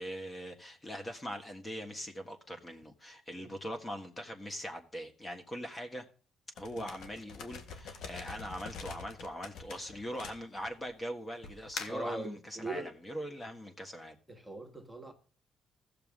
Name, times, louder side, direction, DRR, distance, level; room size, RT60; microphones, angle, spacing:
voice 1, 0.0-6.0 6.6-14.2, equal, 20° left, 1.5 m, -41 dB
sound 1, 6.6-10.9 11.4-12.1, left 5 dB, 75° left, 1.5 m, -45 dB
voice 2, 11.9-12.9 14.3-15.1, right 2 dB, 5° right, 1.6 m, -41 dB
16.0 x 6.8 x 3.7 m
cardioid pair, 90°, 0 cm